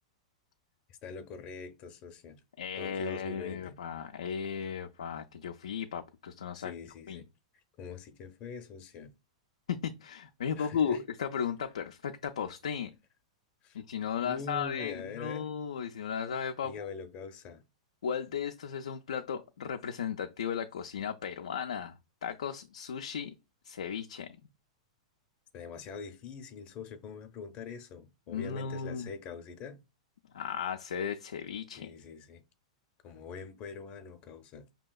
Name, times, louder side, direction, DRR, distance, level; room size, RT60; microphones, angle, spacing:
voice 1, 0.9-2.4 2.8-3.8 6.5-7.3 7.8-9.1 10.6-11.0 13.6-13.8 14.2-15.5 16.6-17.6 25.5-29.8 31.7-32.4 33.0-34.7, left 5 dB, 40° left, 0.6 m, -43 dB
voice 2, 2.6-6.7 7.1-7.2 9.7-12.9 13.7-16.9 18.0-23.3 23.6-24.4 28.3-29.1 30.3-31.9, left 7 dB, 80° left, 0.4 m, -35 dB
5.4 x 2.8 x 2.3 m
hypercardioid pair, 115°, 3 cm